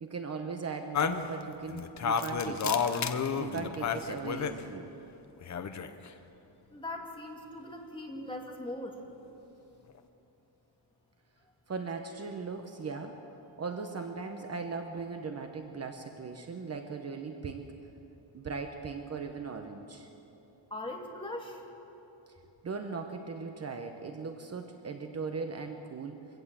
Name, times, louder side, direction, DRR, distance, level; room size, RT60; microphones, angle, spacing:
voice 1, 0.0-2.8 3.4-4.9 11.7-13.2 13.6-17.7 18.3-20.1 22.6-26.3, right 4 dB, 35° right, 5 dB, 1.0 m, -38 dB
sound 1, 0.9-4.6 5.4-6.1, left 6 dB, 40° left, 0.9 m, -31 dB
voice 2, 6.7-9.0 20.7-21.6, left 1 dB, 10° left, 0 dB, 2.1 m, -40 dB
23.5 x 17.0 x 7.5 m, 3.0 s
wide cardioid pair, 175°, 44 cm